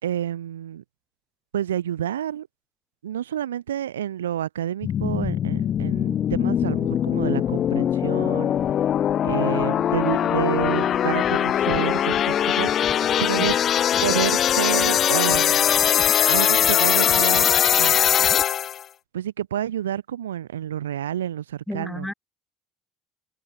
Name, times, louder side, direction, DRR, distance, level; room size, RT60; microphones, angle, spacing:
voice 1, 0.0-0.8 1.5-2.5 3.0-8.5 9.2-12.7 13.2-13.5 14.0-15.7 16.3-17.5 17.8-18.0 19.1-22.1, right 10 dB, 80° right, 2.8 m, -29 dB
sound 1, 4.8-18.8, left 10 dB, 45° left, 1.6 m, -21 dB
voice 2, 21.7-22.1, left 1 dB, 5° left, 5.4 m, -32 dB
figure-of-eight pair, 55°, 0 cm